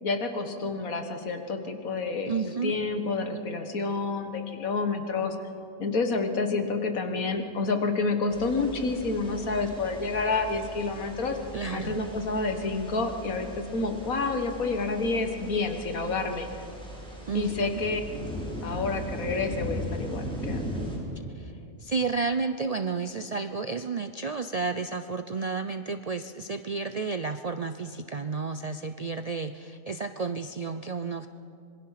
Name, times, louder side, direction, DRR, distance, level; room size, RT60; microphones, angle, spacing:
voice 1, 0.0-5.4 5.8-11.4 11.7-16.5 17.3-18.0 18.6-20.7, left 3 dB, 75° left, 6 dB, 1.9 m, -29 dB
voice 2, 2.3-2.7 11.5-12.0 17.3-17.8 21.3-31.3, right 4 dB, 90° right, 9 dB, 0.3 m, -32 dB
sound 1, 8.3-21.0, equal, 5° left, 4.4 m, -38 dB
26.0 x 20.5 x 5.8 m, 2.6 s
omnidirectional pair, 1.5 m